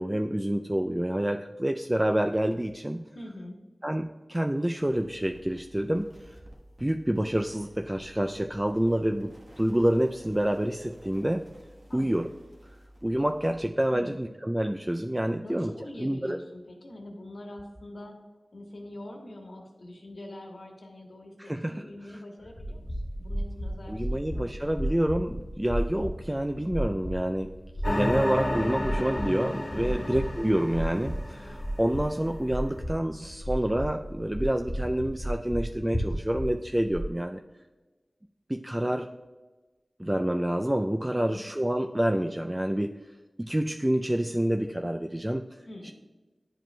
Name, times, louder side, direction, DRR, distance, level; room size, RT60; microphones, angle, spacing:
voice 1, 0.0-3.1 3.8-6.1 6.8-11.5 11.9-12.3 13.0-15.7 16.0-16.4 21.4-22.2 23.9-27.5 27.9-37.4 38.5-39.1 40.0-43.0 43.4-45.4 45.8-45.9, right 1 dB, 15° right, 4 dB, 0.3 m, -28 dB
voice 2, 3.1-3.6 11.9-12.2 13.9-14.2 15.4-18.2 18.5-24.8 29.9-30.2 41.2-41.4 45.6-45.9, left 1 dB, 80° left, 1 dB, 1.4 m, -44 dB
sound 1, 4.8-13.6, equal, 55° right, 1.2 m, -53 dB
sound 2, 22.4-37.1, equal, 30° left, 1.2 m, -34 dB
sound 3, 27.8-32.3, left 1 dB, 60° left, 1.3 m, -32 dB
10.5 x 5.0 x 2.2 m, 1.2 s
wide cardioid pair, 55°, 0 cm